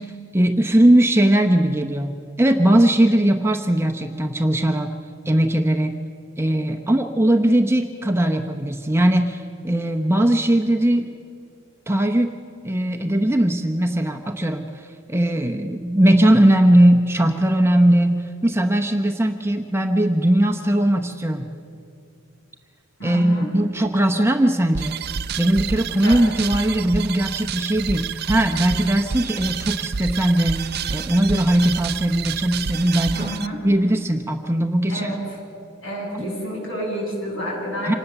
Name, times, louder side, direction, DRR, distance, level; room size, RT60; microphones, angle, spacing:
voice 1, 0.0-4.9 5.3-6.0 6.4-11.1 11.9-12.3 12.6-21.5 23.0-25.0 25.4-33.3 33.6-35.1 37.8-37.9, right 1 dB, 10° right, 4 dB, 0.7 m, -19 dB
voice 2, 23.0-23.5 26.0-26.2 33.1-33.7 34.9-35.4 35.8-38.0, equal, 60° left, -1 dB, 7.6 m, -29 dB
sound 1, 24.7-33.5, right 6 dB, 45° right, 0.5 m, -29 dB
26.0 x 19.5 x 6.9 m, 2.4 s
head